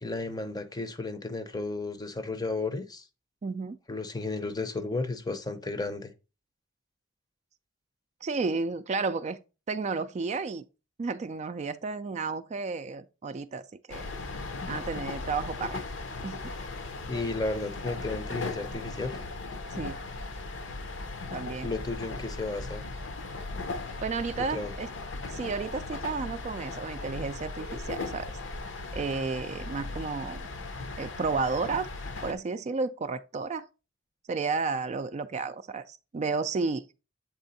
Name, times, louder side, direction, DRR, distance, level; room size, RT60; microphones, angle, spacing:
voice 1, 0.0-3.0 3.9-6.1 17.1-19.2 21.6-22.8 24.5-24.7, left 3 dB, 20° left, 0.6 m, -33 dB
voice 2, 3.4-3.8 8.2-9.4 9.7-10.6 11.0-14.1 14.7-15.8 16.2-16.5 19.7-20.0 21.3-21.7 24.0-24.9 25.3-28.3 28.9-30.4 31.0-31.9 32.2-33.7 34.3-36.8, right 4 dB, 35° right, 0.3 m, -32 dB
sound 1, 13.9-32.3, left 3 dB, 70° left, 0.7 m, -37 dB
7.5 x 3.5 x 4.0 m
head